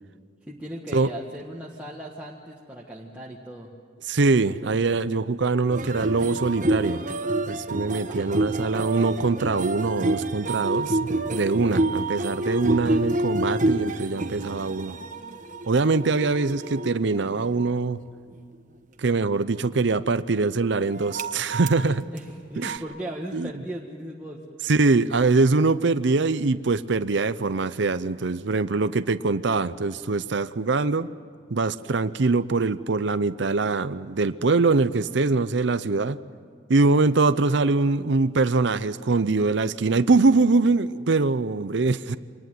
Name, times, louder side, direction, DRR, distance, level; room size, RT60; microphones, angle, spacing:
voice 1, 0.5-3.7 8.1-8.5 22.1-24.4, right 1 dB, 10° right, -4 dB, 1.6 m, -37 dB
voice 2, 4.1-7.0 7.5-15.0 15.7-18.0 19.0-22.1 22.6-22.8 23.3-23.5 24.7-31.1 31.5-36.2 36.7-42.2, right 3 dB, 65° right, 13 dB, 0.6 m, -23 dB
sound 1, 5.7-17.7 20.9-21.8 22.2-22.3 22.6-22.8, right 2 dB, 40° right, 1.3 m, -28 dB
25.5 x 20.0 x 9.4 m, 2.2 s
head